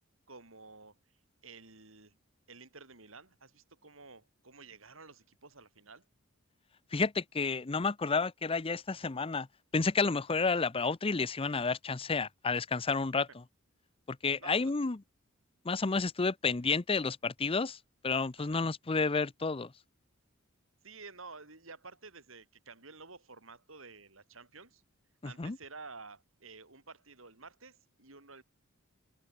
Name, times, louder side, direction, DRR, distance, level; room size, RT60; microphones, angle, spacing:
voice 1, 0.3-0.9 1.4-2.2 2.5-6.0 14.4-14.7 18.4-18.6 20.8-24.8 25.2-28.4, right 4 dB, 70° right, 5.5 m, -51 dB
voice 2, 6.9-9.5 9.7-13.4 14.1-15.0 15.6-19.7 25.2-25.6, left 4 dB, 25° left, 0.6 m, -31 dB
open air
head